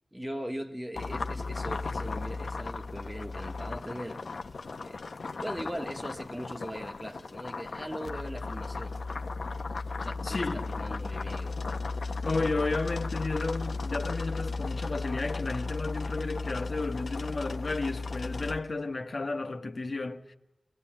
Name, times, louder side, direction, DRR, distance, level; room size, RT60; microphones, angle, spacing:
voice 1, 0.1-4.2 4.8-5.0 5.3-9.0 10.0-11.6, equal, 10° right, 1.7 m, -40 dB
sound 1, 1.0-18.6, left 3 dB, 75° left, 0.9 m, -35 dB
voice 2, 10.2-10.7 12.2-20.3, left 3 dB, 60° left, 1.3 m, -33 dB
22.0 x 21.0 x 8.9 m
wide cardioid pair, 60°, 0 cm